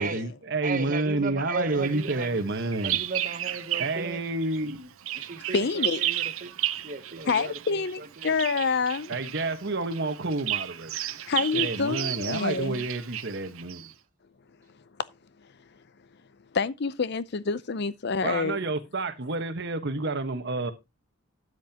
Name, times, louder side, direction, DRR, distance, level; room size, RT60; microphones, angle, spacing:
voice 1, 0.0-3.0 3.8-4.9 9.1-10.9 11.5-13.9 18.2-20.7, right 2 dB, 55° right, 1.3 m, -29 dB
voice 2, 0.6-2.4 2.8-4.2 5.1-6.5 6.8-8.3, right 4 dB, 40° right, 1.0 m, -36 dB
Bird vocalization bird call bird song, 1.8-4.1 4.4-13.9, right 13 dB, 90° right, 0.7 m, -33 dB
voice 3, 5.5-6.0 7.3-9.1 11.3-12.8 16.5-18.6, left 5 dB, 55° left, 0.6 m, -27 dB
12.5 x 7.7 x 2.9 m
head